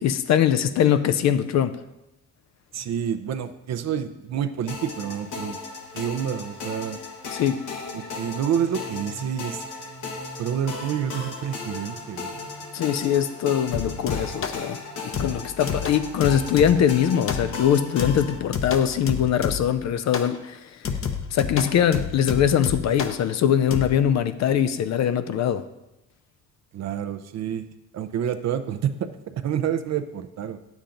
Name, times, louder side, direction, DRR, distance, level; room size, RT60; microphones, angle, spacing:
voice 1, 0.0-1.8 7.3-7.7 12.7-14.8 15.0-20.8 21.3-25.6, left 9 dB, 60° left, 11 dB, 0.5 m, -22 dB
voice 2, 2.7-5.6 5.9-7.0 7.9-9.7 10.4-12.5 26.7-27.7 27.9-30.6, right 9 dB, 60° right, 8 dB, 0.6 m, -28 dB
sound 1, 4.7-18.4, left 3 dB, 80° left, 1.3 m, -36 dB
sound 2, 13.7-14.7 15.1-16.9 17.3-17.7 18.0-19.8 20.1-20.4 20.8-23.2 23.7-23.9, left 6 dB, 45° left, 0.8 m, -30 dB
8.7 x 7.2 x 3.8 m, 0.94 s
cardioid pair, 90°, 30 cm